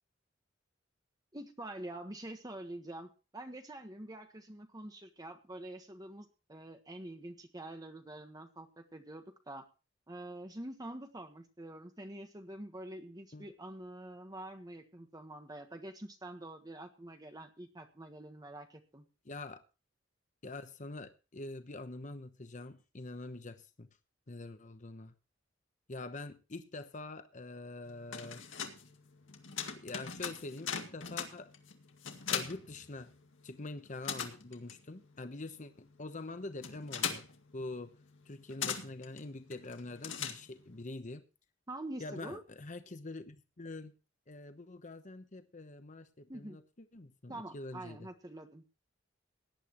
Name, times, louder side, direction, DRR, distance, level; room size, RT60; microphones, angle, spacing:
voice 1, 1.3-9.7 10.1-19.0 41.7-42.4 46.3-46.6 47.3-48.6, right 1 dB, 20° right, 1.4 m, -46 dB
voice 2, 19.2-19.6 20.4-23.9 24.3-25.1 25.9-28.5 29.7-31.5 32.3-33.1 33.4-37.3 37.5-38.0 38.3-41.2 42.0-43.9 44.3-46.6 46.9-48.1, left 2 dB, 40° left, 1.0 m, -45 dB
sound 1, 27.9-33.5 33.7-40.8, left 7 dB, 85° left, 2.0 m, -41 dB
18.0 x 11.0 x 3.1 m
head